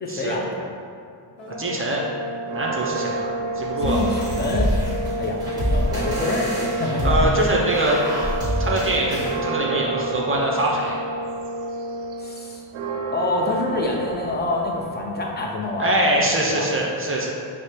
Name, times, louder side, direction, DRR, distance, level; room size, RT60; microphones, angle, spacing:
voice 1, 0.0-0.6 3.8-4.7 5.2-7.3 12.2-12.6 13.1-16.7, left 2 dB, 25° left, -1 dB, 0.5 m, -26 dB
sound 1, 1.4-12.4, right 1 dB, 65° left, 0.8 m, -30 dB
voice 2, 1.6-2.0 2.5-4.0 7.0-8.0 8.6-10.9 15.8-17.3, right 1 dB, 30° right, -3 dB, 0.5 m, -23 dB
Church bell, 2.4-4.8 5.2-5.3 5.6-15.7, right 5 dB, 90° right, 0.5 m, -34 dB
sound 2, 3.8-9.4, equal, 10° right, 1.1 m, -26 dB
4.9 x 2.1 x 4.3 m, 2.4 s
cardioid pair, 115°, 45 cm